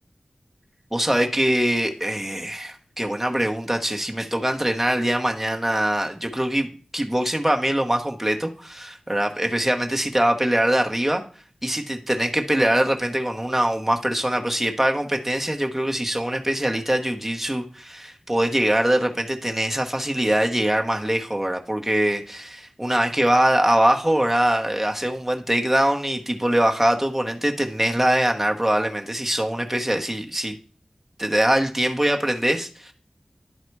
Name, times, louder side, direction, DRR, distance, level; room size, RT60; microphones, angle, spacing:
voice 1, 0.9-11.2 11.6-30.5 31.2-32.9, right 1 dB, 10° right, 3 dB, 1.1 m, -23 dB
11.0 x 4.1 x 4.6 m, 0.41 s
wide cardioid pair, 65°, 2 cm